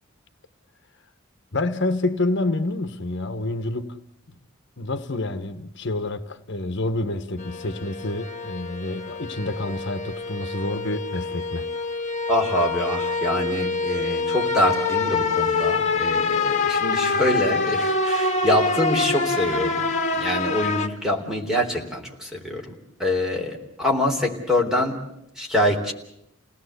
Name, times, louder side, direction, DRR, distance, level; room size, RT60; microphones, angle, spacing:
voice 1, 1.5-4.0 4.8-11.7, left 2 dB, 60° left, 1.3 m, -28 dB
sound 1, 7.4-20.9, left 4 dB, 35° left, 2.0 m, -25 dB
voice 2, 12.3-19.9 20.2-25.0 25.4-25.9, left 1 dB, 5° right, 3.7 m, -25 dB
29.0 x 19.0 x 8.2 m
head